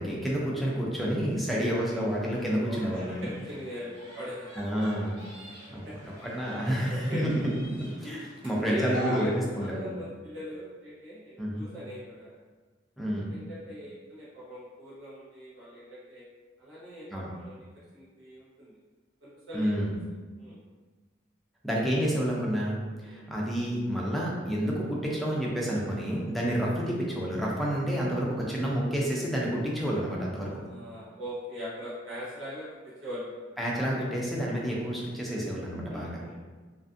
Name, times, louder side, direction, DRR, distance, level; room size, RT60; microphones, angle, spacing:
voice 1, 0.0-3.3 4.6-5.2 5.7-5.9 6.2-7.5 7.8-9.3 9.6-9.9 11.4-11.6 13.0-13.3 17.1-17.3 19.5-19.9 21.6-30.5 33.6-36.2, equal, ahead, -5 dB, 0.4 m, -29 dB
sound 1, 1.8-9.7, equal, 30° right, 0.9 m, -44 dB
voice 2, 2.6-4.8 5.8-5.9 6.8-7.3 8.6-12.4 13.3-16.2 16.6-17.6 17.9-18.8 19.2-19.8 20.4-20.6 23.0-23.3 30.4-33.4 35.9-36.3, equal, 90° right, -9 dB, 0.9 m, -40 dB
2.4 x 2.4 x 2.4 m, 1.4 s
head